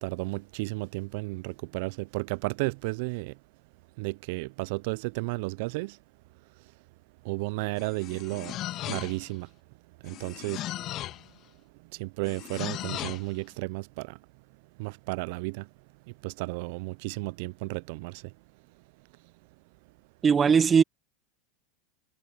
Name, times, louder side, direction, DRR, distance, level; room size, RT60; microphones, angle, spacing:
voice 1, 0.0-3.3 4.0-6.0 7.2-8.6 8.9-9.5 10.0-10.6 11.9-14.2 14.8-15.6 16.2-18.2, right 26 dB, 60° right, 0.7 m, -33 dB
sound 1, 7.8-9.4 10.0-11.3 12.2-13.3, left 14 dB, 45° left, 2.2 m, -37 dB
voice 2, 20.2-20.8, right 6 dB, 25° right, 0.9 m, -19 dB
hypercardioid pair, 90°, 0 cm